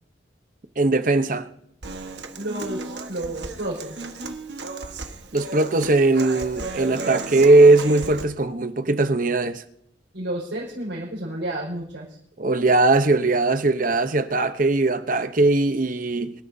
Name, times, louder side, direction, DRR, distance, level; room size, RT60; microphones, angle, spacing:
voice 1, 0.8-1.5 5.3-9.6 12.4-16.3, right 2 dB, 45° right, 0.9 m, -19 dB
Human voice / Acoustic guitar, 1.8-8.2, right 3 dB, 65° right, 1.4 m, -34 dB
voice 2, 2.4-4.1 10.1-12.2, right 1 dB, 85° right, 5.4 m, -31 dB
25.5 x 13.0 x 2.7 m
head